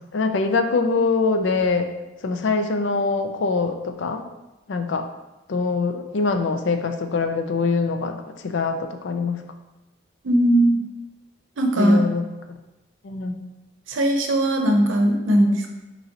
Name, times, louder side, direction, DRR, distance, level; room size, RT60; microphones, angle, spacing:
voice 1, 0.1-1.9 2.2-4.2 4.7-5.0 5.5-9.4 11.7-12.2 13.0-13.4, left 4 dB, 70° left, 6 dB, 0.4 m, -23 dB
voice 2, 10.2-10.8 11.6-12.0 13.9-15.7, right 1 dB, 80° right, 3 dB, 0.7 m, -19 dB
5.3 x 3.0 x 2.8 m, 1.0 s
head